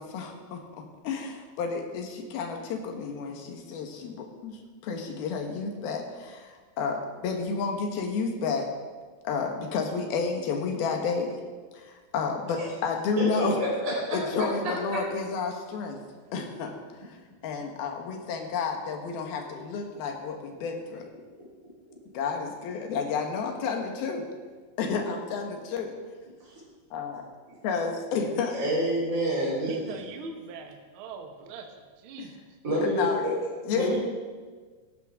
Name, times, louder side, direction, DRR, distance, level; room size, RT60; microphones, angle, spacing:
voice 1, 0.0-8.7 9.2-11.4 11.7-13.6 14.1-16.0 16.3-21.1 22.1-24.2 24.8-25.9 26.9-27.2 27.6-28.6 32.2-32.3 32.8-33.2 33.7-34.0, left 5 dB, 75° left, 3 dB, 3.3 m, -31 dB
voice 2, 13.2-14.2 19.6-19.8 28.5-30.0 32.6-33.3 33.7-34.0, right 1 dB, 20° right, -7 dB, 4.1 m, -28 dB
voice 3, 29.7-31.7 32.0-32.4, right 4 dB, 70° right, 3 dB, 1.2 m, -41 dB
17.5 x 12.0 x 3.7 m, 1.5 s
omnidirectional pair, 4.4 m